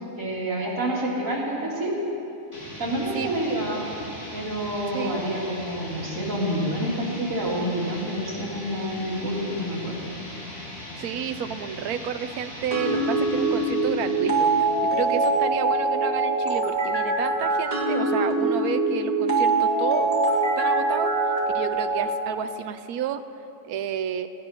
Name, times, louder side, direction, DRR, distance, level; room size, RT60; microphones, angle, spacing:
voice 1, 0.2-2.0 2.8-3.9 4.3-10.0, right 1 dB, 60° right, -6 dB, 3.2 m, -28 dB
sound 1, 2.5-15.4, left 1 dB, 20° left, 2.7 m, -39 dB
voice 2, 11.0-20.1 20.6-23.2 23.6-24.3, right 8 dB, 80° right, 10 dB, 1.1 m, -31 dB
sound 2, 12.7-22.1, right 2 dB, 25° right, 1.8 m, -23 dB
16.0 x 9.6 x 5.9 m, 2.8 s
omnidirectional pair, 1.6 m